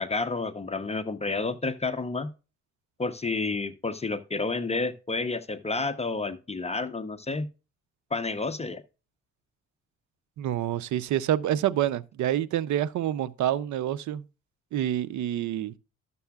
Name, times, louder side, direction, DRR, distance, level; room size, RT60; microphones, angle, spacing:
voice 1, 0.0-2.3 3.0-7.5 8.1-8.8, left 3 dB, 20° left, 0.7 m, -30 dB
voice 2, 10.4-14.2 14.7-15.7, right 11 dB, 70° right, 0.6 m, -27 dB
12.5 x 6.9 x 2.3 m
cardioid pair, 90°, 30 cm